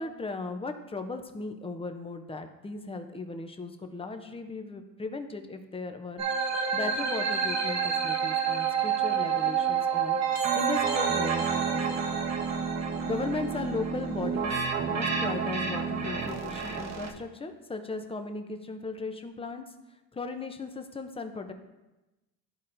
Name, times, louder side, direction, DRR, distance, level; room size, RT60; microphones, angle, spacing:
voice 1, 0.0-6.2 6.7-12.1 13.0-14.5 14.9-19.7 20.1-21.5, left 3 dB, 15° left, 6 dB, 0.6 m, -37 dB
sound 1, 6.2-17.1, right 6 dB, 45° right, 0.9 m, -29 dB
12.5 x 4.2 x 2.6 m, 1.1 s
cardioid pair, 115°, 37 cm